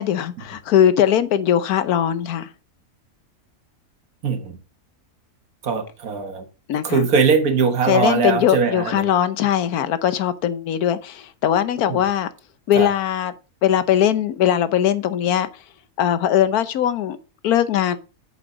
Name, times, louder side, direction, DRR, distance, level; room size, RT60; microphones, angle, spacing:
voice 1, 0.0-2.5 6.7-7.1 7.9-12.3 12.7-13.3 13.6-15.5 16.0-17.2 17.4-18.0, left 10 dB, 85° left, 1.3 m, -20 dB
voice 2, 4.2-4.6 5.6-6.5 6.8-9.1 11.9-12.0 12.8-12.9, right 5 dB, 75° right, 1.8 m, -21 dB
8.4 x 7.0 x 3.9 m
omnidirectional pair, 1.5 m